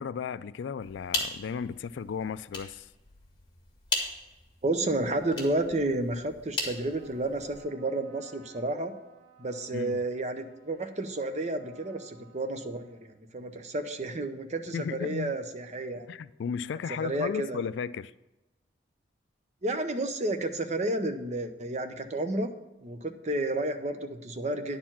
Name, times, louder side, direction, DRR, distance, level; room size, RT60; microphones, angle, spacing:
voice 1, 0.0-2.9 9.7-10.0 14.7-15.3 16.1-18.1, left 6 dB, 70° left, 0.3 m, -35 dB
sound 1, 0.8-7.6, left 3 dB, 20° left, 1.9 m, -38 dB
voice 2, 4.6-8.9 9.4-16.1 17.0-17.7 19.6-22.5 22.8-24.8, right 2 dB, 35° right, 0.7 m, -31 dB
Trumpet, 6.7-13.5, right 5 dB, 75° right, 3.5 m, -59 dB
10.0 x 4.5 x 7.3 m
head